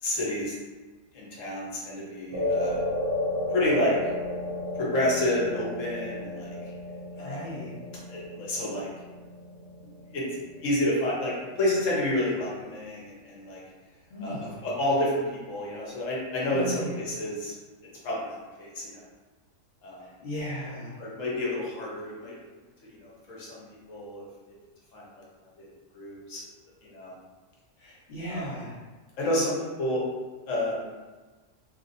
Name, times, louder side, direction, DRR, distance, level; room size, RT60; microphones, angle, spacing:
voice 1, 0.0-0.5 1.1-2.8 3.5-4.0 4.7-6.6 7.2-7.5 8.1-8.9 10.1-10.2 10.6-13.6 14.2-14.4 14.6-15.2 15.5-17.5 18.0-19.0 19.8-20.0 21.0-22.4 22.9-23.6 23.9-24.2 24.9-25.2 25.6-25.7 25.9-26.5 26.8-27.1 28.3-28.5 29.2-30.0 30.5-30.8, left 1 dB, 75° left, -5 dB, 1.2 m, -29 dB
sound 1, 2.3-10.8, left 1 dB, 55° right, 0.9 m, -33 dB
voice 2, 7.2-7.8 14.1-14.6 16.5-17.0 20.0-21.0 27.8-28.7, equal, 55° left, -9 dB, 1.6 m, -36 dB
3.1 x 2.8 x 2.6 m, 1.3 s
omnidirectional pair, 1.4 m